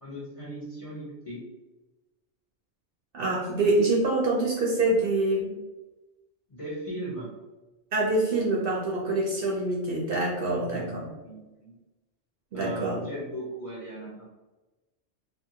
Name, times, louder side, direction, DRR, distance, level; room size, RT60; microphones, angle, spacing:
voice 1, 0.0-1.4 6.5-7.3 10.5-11.7 12.5-14.3, equal, 35° left, -7 dB, 0.7 m, -38 dB
voice 2, 3.1-5.5 7.9-11.1 12.5-13.0, right 2 dB, 60° right, -3 dB, 0.7 m, -25 dB
2.7 x 2.6 x 2.7 m, 1.1 s
omnidirectional pair, 1.3 m